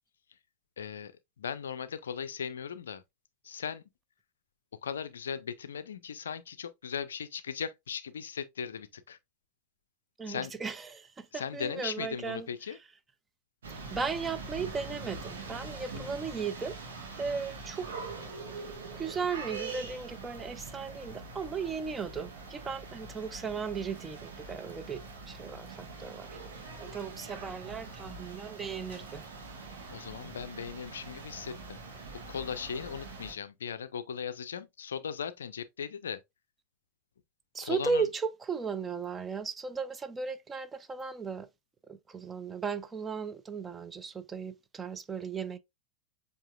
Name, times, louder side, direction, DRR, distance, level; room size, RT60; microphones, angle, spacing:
voice 1, 0.8-3.0 3.4-3.8 4.8-9.2 10.3-10.5 11.3-12.8 29.9-31.8 32.1-36.2 37.6-38.0, left 7 dB, 65° left, 0.4 m, -38 dB
voice 2, 10.2-12.5 13.7-16.8 17.2-17.9 19.0-26.3 26.8-29.2 37.5-41.5 41.9-45.6, right 5 dB, 15° right, 0.5 m, -36 dB
sound 1, 13.6-33.3, right 3 dB, 65° right, 1.2 m, -44 dB
7.3 x 2.7 x 2.3 m
figure-of-eight pair, 90°, 0 cm